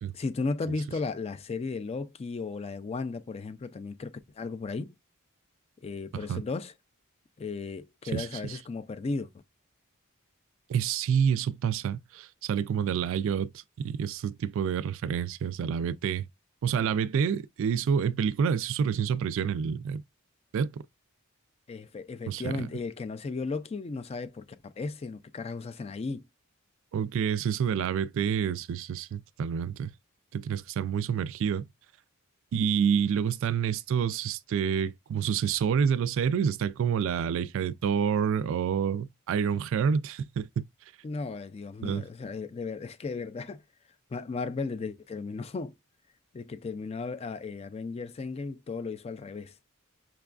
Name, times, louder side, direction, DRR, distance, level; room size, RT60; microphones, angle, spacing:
voice 1, 0.1-4.9 5.8-6.7 7.4-9.3 21.7-26.3 41.0-43.6 44.1-45.7 46.3-49.5, left 4 dB, 30° left, 0.3 m, -35 dB
voice 2, 8.1-8.6 10.7-13.5 13.8-16.3 16.6-20.0 20.5-20.7 22.3-22.7 26.9-29.9 30.3-31.7 32.5-40.6 41.8-42.0, right 7 dB, 65° right, 0.3 m, -28 dB
5.7 x 2.3 x 2.3 m
head